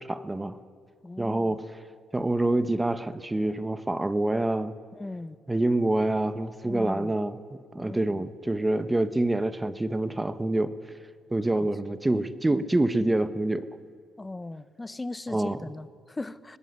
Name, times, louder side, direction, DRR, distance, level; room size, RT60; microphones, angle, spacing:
voice 1, 0.1-0.6 1.2-1.7 2.1-4.8 5.5-7.4 7.7-10.7 11.3-13.7 15.3-15.6, right 2 dB, 15° right, 12 dB, 1.0 m, -26 dB
voice 2, 1.0-1.6 4.9-5.4 6.6-7.1 7.8-8.2 11.5-11.7 14.2-16.6, left 2 dB, 15° left, 15 dB, 0.9 m, -38 dB
24.0 x 19.0 x 9.6 m, 2.1 s
cardioid pair, 90°, 0 cm